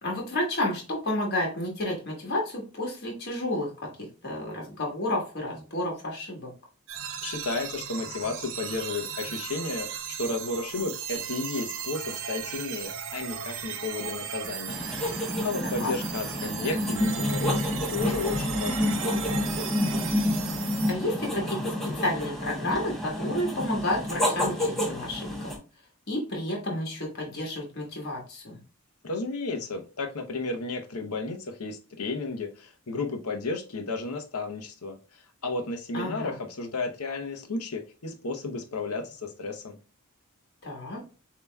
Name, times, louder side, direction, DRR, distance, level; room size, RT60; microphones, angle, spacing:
voice 1, 0.0-3.9 4.2-6.5 15.6-15.9 20.9-25.5 26.1-28.6 35.9-36.3 40.6-41.0, left 1 dB, 45° left, 0 dB, 1.4 m, -31 dB
sound 1, 6.9-20.9, right 8 dB, 60° right, 0.7 m, -36 dB
voice 2, 7.2-19.0 29.0-39.8, left 3 dB, 85° left, 5 dB, 0.8 m, -33 dB
sound 2, 14.7-25.6, left 1 dB, ahead, 1.0 m, -29 dB
6.9 x 2.9 x 2.2 m, 0.35 s
head